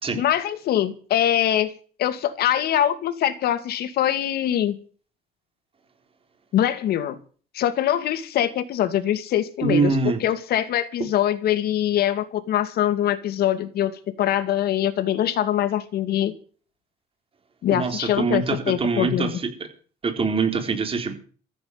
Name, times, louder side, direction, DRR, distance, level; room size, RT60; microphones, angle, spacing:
voice 1, 0.2-4.7 6.5-7.2 7.5-13.9 14.2-16.3 17.6-19.4, left 11 dB, 70° left, 11 dB, 2.3 m, -23 dB
voice 2, 9.6-10.2 17.7-19.5 20.0-21.1, right 4 dB, 35° right, 6 dB, 4.0 m, -24 dB
14.5 x 8.0 x 9.6 m, 0.42 s
cardioid pair, 110°, 17 cm